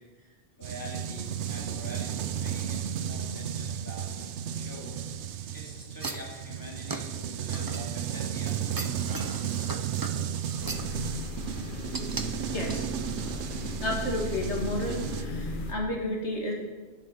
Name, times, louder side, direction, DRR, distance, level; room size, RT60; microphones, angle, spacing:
voice 1, 0.0-4.1 4.5-5.0 5.5-9.4, equal, 15° left, -3 dB, 2.8 m, -45 dB
sound 1, 0.6-15.3, right 9 dB, 85° right, 1.0 m, -34 dB
sound 2, 6.0-8.3 8.7-11.0 11.9-12.3 12.7-12.8, right 3 dB, 25° right, 0.7 m, -38 dB
sound 3, 10.6-15.7, left 2 dB, 50° left, 1.2 m, -36 dB
voice 2, 12.5-12.9 13.8-16.5, left 1 dB, 85° left, -1 dB, 2.6 m, -31 dB
11.0 x 9.0 x 6.9 m, 1.3 s
omnidirectional pair, 1.1 m